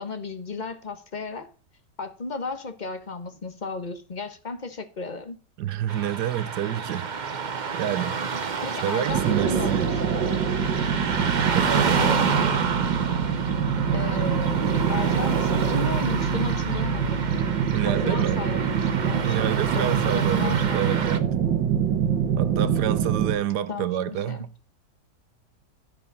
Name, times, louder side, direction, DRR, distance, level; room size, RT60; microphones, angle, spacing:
voice 1, 0.0-1.5 2.0-5.4 8.6-10.2 11.8-12.4 13.9-17.3 17.9-19.4 19.7-21.1 23.7-24.4, left 4 dB, 30° left, 1.0 m, -34 dB
voice 2, 5.6-7.1 7.7-8.2 8.8-9.9 11.5-12.0 17.7-18.4 19.2-21.2 22.4-24.5, right 11 dB, 70° right, 1.3 m, -28 dB
Car passing by / Traffic noise roadway noise, 5.9-21.2, right 5 dB, 40° right, 0.6 m, -30 dB
sound 1, 9.1-23.3, right 7 dB, 90° right, 2.2 m, -25 dB
13.0 x 5.1 x 5.3 m
omnidirectional pair, 1.9 m